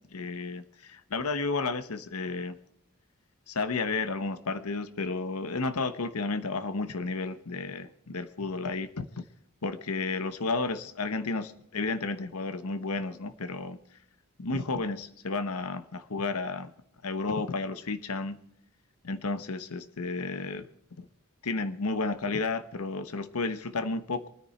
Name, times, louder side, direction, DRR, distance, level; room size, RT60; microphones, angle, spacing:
voice 1, 0.1-2.6 3.5-9.2 9.6-13.8 14.4-16.7 17.0-18.4 19.0-20.7 21.0-21.1 21.4-24.3, left 3 dB, 90° left, 11 dB, 1.0 m, -32 dB
24.0 x 9.9 x 4.4 m, 0.73 s
head